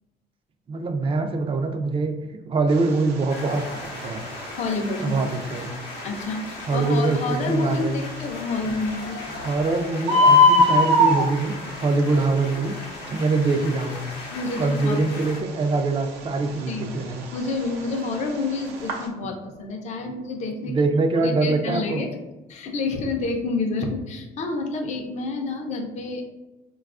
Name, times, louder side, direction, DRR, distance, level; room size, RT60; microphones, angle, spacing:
voice 1, 0.7-2.1 2.5-4.2 5.0-5.7 6.7-8.0 9.4-12.8 13.1-14.0 14.6-17.3 20.6-22.0, right 3 dB, 30° right, 6 dB, 0.4 m, -24 dB
Bird, 2.7-19.1, left 2 dB, 85° right, 0.6 m, -25 dB
sound 1, 3.3-15.4, left 3 dB, 85° left, 0.6 m, -38 dB
voice 2, 4.6-5.1 6.0-9.3 14.3-15.0 16.7-17.0 17.3-20.8 21.2-22.1 22.5-26.2, left 3 dB, 45° left, 2 dB, 0.5 m, -28 dB
3.9 x 2.3 x 2.4 m, 1.1 s
cardioid pair, 110°, 17 cm